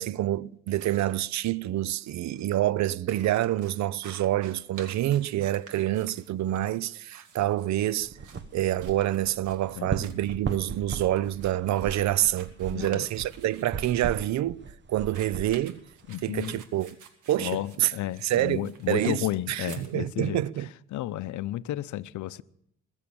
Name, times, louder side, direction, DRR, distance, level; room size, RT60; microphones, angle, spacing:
voice 1, 0.0-8.2 8.5-14.6 14.9-15.8 16.2-16.9 17.3-17.9 18.2-20.7, right 13 dB, 65° right, 0.5 m, -27 dB
sound 1, 0.7-1.1 1.9-2.1 2.3-2.4 2.7-13.8 15.0-19.9, right 7 dB, 85° right, 2.0 m, -51 dB
sound 2, 8.0-16.5, right 5 dB, 40° right, 1.1 m, -38 dB
voice 2, 12.7-13.1 16.1-16.6 17.4-20.4 20.9-22.4, left 14 dB, 75° left, 0.7 m, -32 dB
21.5 x 7.3 x 8.6 m
cardioid pair, 90°, 30 cm